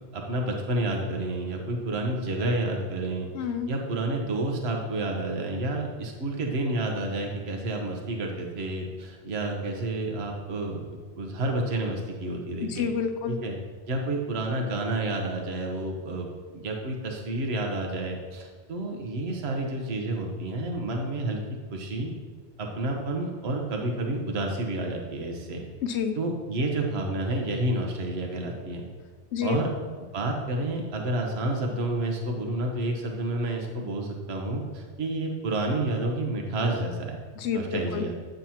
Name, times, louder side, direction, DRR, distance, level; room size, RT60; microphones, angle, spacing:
voice 1, 0.1-3.3 3.7-10.8 11.1-12.9 13.3-13.5 13.9-21.4 21.7-22.1 22.6-25.6 26.1-28.8 29.4-29.7 30.1-37.2 37.5-38.1, right 2 dB, 70° right, 1 dB, 1.2 m, -30 dB
voice 2, 3.3-3.7 12.6-13.4 25.8-26.2 29.3-29.6 37.4-38.0, left 6 dB, 80° left, 7 dB, 1.0 m, -28 dB
8.9 x 7.9 x 2.8 m, 1.6 s
omnidirectional pair, 1.1 m